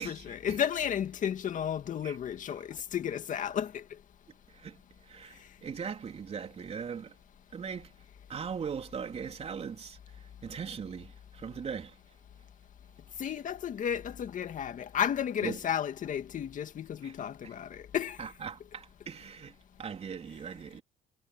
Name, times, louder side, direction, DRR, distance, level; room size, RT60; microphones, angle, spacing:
voice 1, 0.0-3.8 13.2-18.2, left 9 dB, 50° left, 2.0 m, -33 dB
voice 2, 5.0-7.2 7.5-7.9 8.3-11.9 15.4-15.6 17.0-17.1 17.4-17.5 18.2-20.8, right 6 dB, 40° right, 3.8 m, -40 dB
cardioid pair, 110°, 17 cm